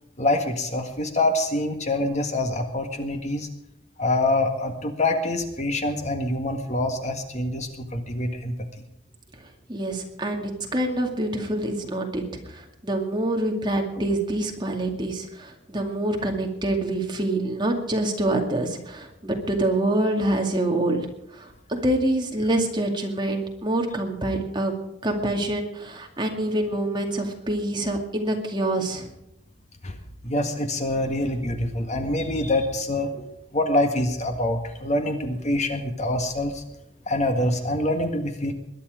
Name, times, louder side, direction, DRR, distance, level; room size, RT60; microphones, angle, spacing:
voice 1, 0.2-3.5 4.0-8.6 29.8-29.9 30.2-33.3 33.5-36.6 37.1-38.5, left 1 dB, 40° left, 6 dB, 1.7 m, -25 dB
voice 2, 9.7-12.2 12.5-21.1 21.3-24.7 25.0-29.1, right 1 dB, 25° right, 2 dB, 2.3 m, -26 dB
21.5 x 10.0 x 5.1 m, 0.83 s
head